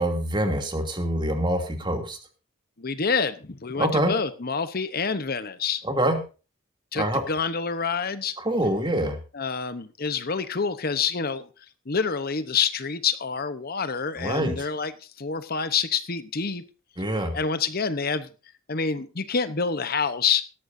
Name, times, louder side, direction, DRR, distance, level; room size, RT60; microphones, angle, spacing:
voice 1, 0.0-2.2 3.8-4.2 5.8-6.2 6.9-7.2 8.4-9.2 14.2-14.7 17.0-17.3, right 1 dB, 20° right, 5 dB, 2.7 m, -25 dB
voice 2, 2.8-5.8 6.9-8.4 9.3-11.5 11.9-16.6 17.3-18.3 18.7-20.4, left 5 dB, 45° left, 12 dB, 0.9 m, -27 dB
18.0 x 13.0 x 2.7 m, 0.33 s
head